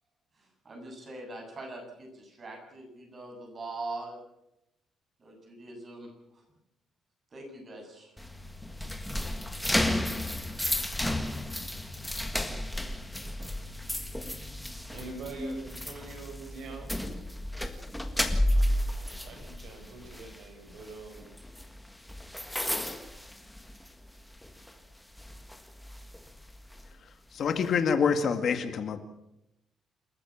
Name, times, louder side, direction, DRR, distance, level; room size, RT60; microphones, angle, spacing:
voice 1, 0.6-4.2 5.2-6.1 7.3-8.1, right 2 dB, 35° right, 3 dB, 7.5 m, -42 dB
sound 1, 8.2-24.1 24.4-24.7 25.2-26.8, left 1 dB, 5° left, 1.7 m, -32 dB
voice 2, 14.8-17.1 18.5-21.5 23.1-23.2 24.7-24.8 26.9-27.0, right 3 dB, 70° right, 5 dB, 7.0 m, -45 dB
voice 3, 27.3-29.0, left 6 dB, 50° left, 8 dB, 2.1 m, -26 dB
28.0 x 14.5 x 7.3 m, 0.85 s
cardioid pair, 150°, 0 cm